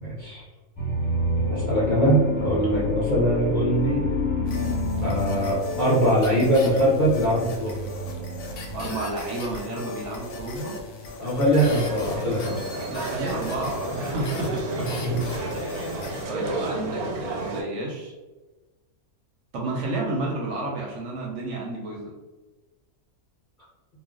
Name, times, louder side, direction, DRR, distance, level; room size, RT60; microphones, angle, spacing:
voice 1, 0.0-0.4 1.5-4.0 5.0-7.7 11.2-12.6 14.8-15.2, right 1 dB, 50° left, -8 dB, 0.6 m, -22 dB
sound 1, 0.8-8.9, left 1 dB, 25° left, 0.9 m, -28 dB
sound 2, 4.4-16.2, left 3 dB, 70° left, 0.9 m, -39 dB
voice 2, 8.7-10.8 12.9-14.9 15.5-15.9 16.3-18.1 19.5-22.1, right 2 dB, 65° right, -2 dB, 0.8 m, -31 dB
sound 3, 11.6-17.6, right 2 dB, 90° right, 1.1 m, -32 dB
2.4 x 2.0 x 3.6 m, 1.2 s
omnidirectional pair, 1.5 m